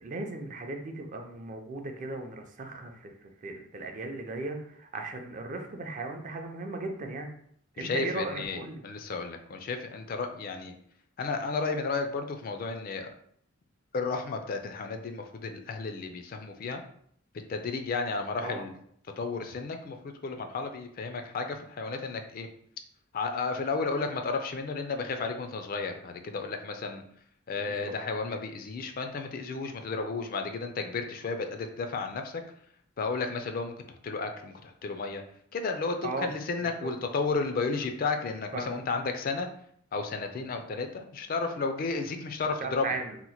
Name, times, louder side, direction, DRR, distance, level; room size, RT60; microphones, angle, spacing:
voice 1, 0.0-7.3 7.7-8.8 18.4-18.6 27.6-27.9 36.0-36.3 36.8-36.9 38.5-38.8 42.6-43.2, right 2 dB, 40° right, 4 dB, 0.4 m, -37 dB
voice 2, 7.8-10.7 11.2-13.1 13.9-16.8 17.5-18.7 19.2-22.5 23.1-27.0 27.5-32.4 33.0-35.2 35.5-39.5 39.9-42.9, left 4 dB, 45° left, 6 dB, 0.3 m, -33 dB
2.9 x 2.1 x 4.1 m, 0.65 s
head